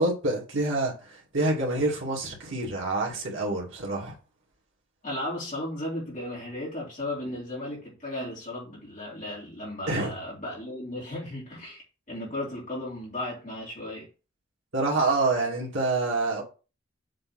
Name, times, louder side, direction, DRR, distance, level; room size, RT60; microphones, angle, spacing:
voice 1, 0.0-4.2 9.9-10.1 14.7-16.4, right 2 dB, 75° right, 2.4 m, -27 dB
voice 2, 5.0-11.8 12.1-14.1, left 1 dB, 40° left, 2.7 m, -35 dB
7.6 x 3.3 x 6.0 m
head